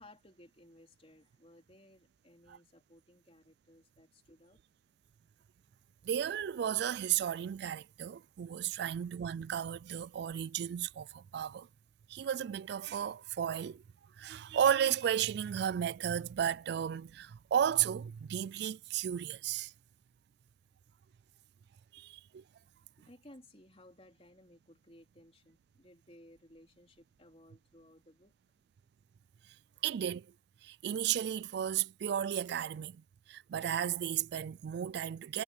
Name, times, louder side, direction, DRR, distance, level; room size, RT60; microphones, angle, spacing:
voice 1, 0.0-4.6 23.0-28.3, left 1 dB, 35° left, 3.9 m, -59 dB
voice 2, 6.0-11.7 12.1-13.8 14.2-19.7 21.9-22.4 29.8-30.3 30.6-33.0 33.3-35.4, right 9 dB, 60° right, 0.3 m, -34 dB
head